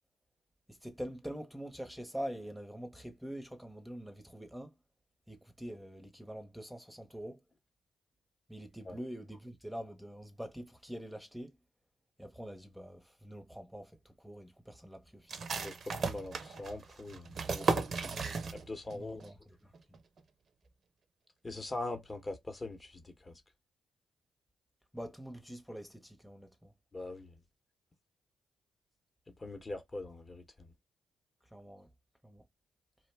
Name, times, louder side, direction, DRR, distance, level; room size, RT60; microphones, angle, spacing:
voice 1, 0.7-4.8 5.3-7.4 8.5-11.6 12.2-15.5 18.1-18.5 18.9-19.7 24.9-26.7 31.5-31.9 32.2-32.4, equal, ahead, 0.7 m, -45 dB
sound 1, 15.3-18.9 19.2-19.3 19.7-20.2, right 4 dB, 60° right, 0.5 m, -35 dB
voice 2, 16.0-18.2 18.5-19.2 21.4-23.4 26.9-27.3 29.4-30.7, left 2 dB, 30° left, 0.8 m, -42 dB
2.5 x 2.1 x 3.3 m
supercardioid pair, 60°, 0 cm